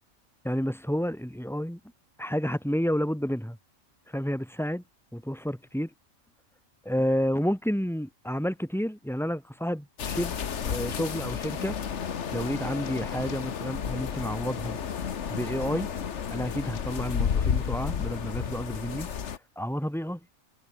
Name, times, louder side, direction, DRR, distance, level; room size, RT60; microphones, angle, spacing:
voice 1, 0.4-1.8 2.2-3.6 4.1-4.8 5.1-5.9 6.8-10.3 10.6-11.8 12.3-14.8 15.3-15.9 16.3-19.1 19.6-20.2, equal, ahead, 6.4 m, -30 dB
sound 1, 10.0-19.4, left 7 dB, 60° left, 1.4 m, -32 dB
omnidirectional pair, 1.4 m